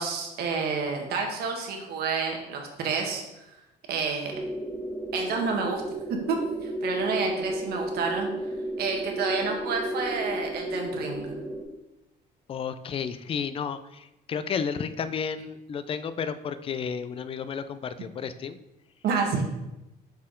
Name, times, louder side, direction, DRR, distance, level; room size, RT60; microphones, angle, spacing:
voice 1, 0.0-3.2 3.9-4.4 5.1-5.8 6.1-8.3 8.8-11.3 19.0-19.5, right 5 dB, 70° right, 2 dB, 1.3 m, -29 dB
sound 1, 4.3-11.6, equal, 5° right, 1.0 m, -33 dB
voice 2, 12.5-18.6, left 6 dB, 35° left, 12 dB, 0.4 m, -32 dB
5.8 x 4.3 x 3.8 m, 0.95 s
cardioid pair, 110°, 17 cm